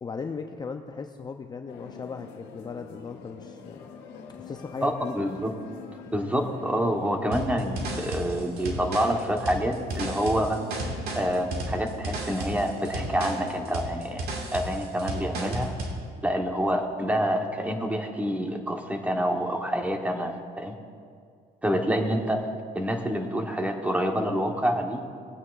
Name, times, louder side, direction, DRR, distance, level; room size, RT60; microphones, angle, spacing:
voice 1, 0.0-3.9 4.4-5.2, left 5 dB, 25° left, 5 dB, 0.5 m, -37 dB
sound 1, 1.7-13.8, left 6 dB, 85° left, 1.3 m, -45 dB
voice 2, 4.8-5.5 6.1-10.6 11.1-14.2 14.5-15.7 16.2-20.8 21.6-22.5 22.7-25.0, equal, 10° right, 3 dB, 1.1 m, -27 dB
sound 2, 7.3-16.0, right 1 dB, 70° right, 1.9 m, -33 dB
19.5 x 8.7 x 2.5 m, 2.2 s
cardioid pair, 110°, 17 cm